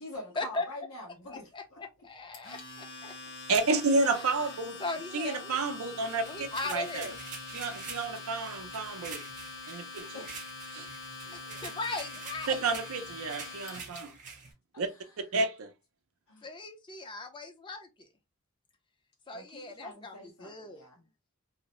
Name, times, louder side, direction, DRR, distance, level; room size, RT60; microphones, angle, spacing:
voice 1, 0.0-1.8 3.0-3.1 10.1-10.3 11.2-11.7 12.5-12.6 13.9-14.1 14.7-15.2 16.3-16.5 19.3-21.1, left 1 dB, 75° left, 0.9 m, -46 dB
voice 2, 1.3-2.6 4.1-4.5 4.8-5.6 6.2-7.2 11.3-12.6 16.4-18.1 19.3-20.8, left 3 dB, 20° left, 0.5 m, -38 dB
Domestic sounds home sounds, 2.3-14.0, left 4 dB, 55° left, 1.2 m, -44 dB
voice 3, 3.5-4.8 5.1-7.1 7.5-9.2 9.7-10.2 10.7-10.9 12.5-14.1 14.8-14.9 15.3-15.7, right 3 dB, 70° right, 0.5 m, -30 dB
sound 1, 6.0-14.5, right 5 dB, 35° right, 0.8 m, -46 dB
2.7 x 2.0 x 2.9 m
head